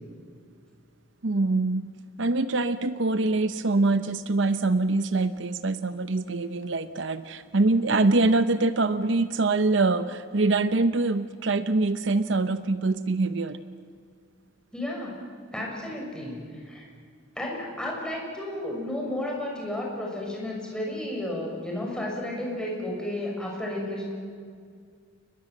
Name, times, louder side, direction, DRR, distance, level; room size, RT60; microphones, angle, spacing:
voice 1, 1.2-13.6, right 3 dB, 65° right, 12 dB, 0.8 m, -24 dB
voice 2, 14.7-15.2 15.5-16.9 17.3-24.1, left 1 dB, 5° left, -2 dB, 6.6 m, -32 dB
30.0 x 20.5 x 7.9 m, 2.1 s
head